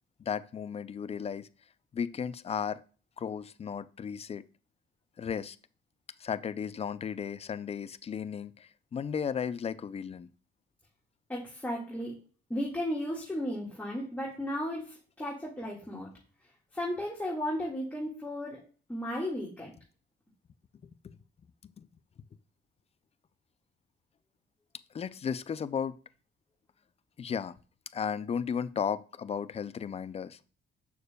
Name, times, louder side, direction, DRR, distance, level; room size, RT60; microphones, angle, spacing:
voice 1, 0.3-1.5 1.9-2.8 3.2-4.4 5.2-5.6 6.2-10.3 21.0-21.2 21.6-21.9 24.9-26.0 27.2-27.6 27.9-30.4, left 7 dB, 30° left, 0.4 m, -35 dB
voice 2, 11.3-12.1 12.5-16.1 16.7-18.6 18.9-19.7, equal, 10° left, 1.7 m, -34 dB
6.7 x 6.4 x 2.3 m
cardioid pair, 90°, 20 cm